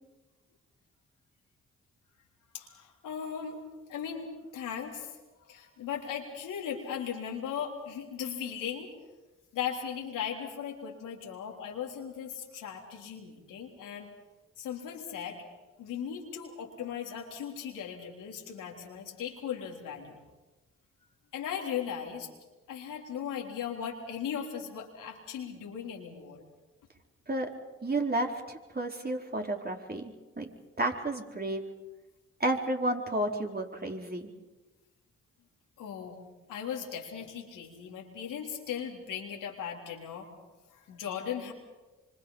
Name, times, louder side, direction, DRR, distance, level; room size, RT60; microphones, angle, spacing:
voice 1, 2.5-3.6 3.9-5.1 5.5-8.9 9.5-14.1 14.6-15.4 15.8-20.2 21.3-22.3 22.7-26.4 35.8-36.2 36.5-40.3 40.7-41.5, left 8 dB, 85° left, 0 dB, 3.6 m, -38 dB
voice 2, 27.8-30.1 30.4-30.5 30.8-31.6 32.4-34.3, right 1 dB, 30° right, 2 dB, 4.5 m, -31 dB
26.5 x 25.0 x 5.6 m, 1.1 s
supercardioid pair, 40°, 31 cm